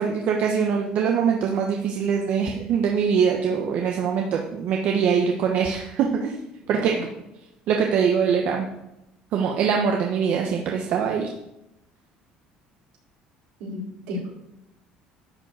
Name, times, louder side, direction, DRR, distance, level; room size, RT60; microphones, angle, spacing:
voice 1, 0.0-6.4 6.7-7.0 7.7-8.7 9.3-11.3, right 6 dB, 60° right, 2 dB, 1.2 m, -23 dB
voice 2, 6.7-7.0 13.6-14.3, equal, 85° right, -3 dB, 4.2 m, -32 dB
11.0 x 4.6 x 7.8 m, 0.88 s
cardioid pair, 105°, 3 cm